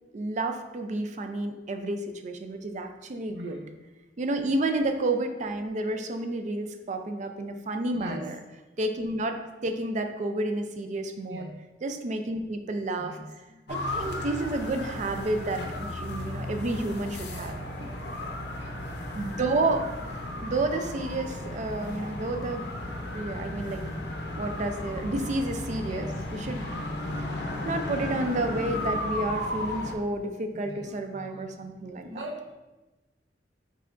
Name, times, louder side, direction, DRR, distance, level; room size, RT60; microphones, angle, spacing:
voice 1, 0.1-3.6 4.2-8.4 8.8-11.5 11.8-13.2 13.7-15.6 16.0-17.5 19.1-22.7 23.1-23.9 24.3-26.7 27.6-32.1, right 2 dB, 45° right, 6 dB, 0.4 m, -30 dB
voice 2, 3.3-3.8 7.9-8.2 11.2-11.5 12.9-13.6 15.6-15.9 17.3-18.9 25.8-26.3 30.5-31.5 32.1-32.5, equal, 80° right, 1 dB, 0.8 m, -43 dB
sound 1, 13.7-30.0, left 1 dB, 65° left, 0.6 m, -34 dB
5.5 x 3.8 x 2.5 m, 1.1 s
head